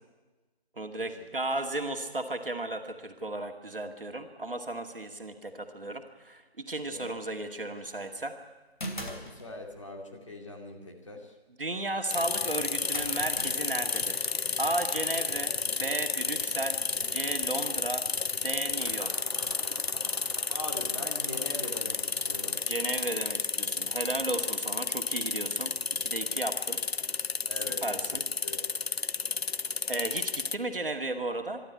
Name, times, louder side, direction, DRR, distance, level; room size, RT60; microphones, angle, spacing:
voice 1, 0.8-8.3 11.6-14.3 14.6-18.0 18.4-19.1 22.7-26.8 27.8-28.2 29.9-31.6, right 2 dB, 60° right, 5 dB, 2.2 m, -34 dB
sound 1, 7.7-8.1 8.8-9.9 12.4-12.5 12.9-15.9, equal, 50° left, 3.1 m, -43 dB
voice 2, 8.9-11.3 20.5-22.6 27.5-28.6, left 2 dB, 30° left, 2 dB, 2.3 m, -42 dB
sound 2, 12.1-30.5, left 5 dB, 75° left, 0.7 m, -32 dB
sound 3, 18.8-23.2, right 2 dB, 30° right, 0.9 m, -48 dB
23.5 x 12.5 x 9.5 m, 1.2 s
figure-of-eight pair, 170°, 32 cm